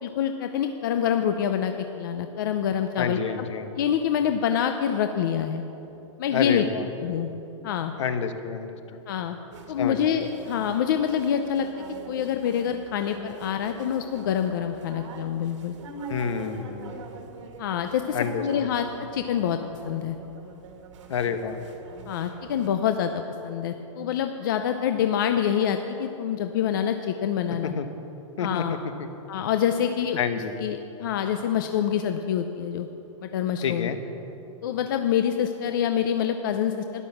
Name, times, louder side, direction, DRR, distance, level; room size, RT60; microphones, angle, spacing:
voice 1, 0.0-3.2 3.8-5.6 6.2-6.6 7.0-7.3 7.6-7.9 9.1-9.4 9.7-15.8 17.6-18.9 19.1-19.6 19.8-20.2 22.1-27.7 28.4-28.8 29.3-30.2 30.6-32.9 33.2-33.9 34.6-37.0, left 9 dB, 40° left, 7 dB, 0.6 m, -26 dB
voice 2, 3.0-3.7 6.3-6.9 8.0-9.0 9.8-10.0 16.1-17.0 18.1-18.4 21.1-21.6 27.6-27.9 28.4-29.1 30.2-30.5 33.6-34.0, left 6 dB, 65° left, 9 dB, 1.2 m, -29 dB
sound 1, 9.5-22.7, right 4 dB, 65° right, 1.8 m, -44 dB
12.5 x 11.0 x 7.2 m, 3.0 s
supercardioid pair, 175°, 17 cm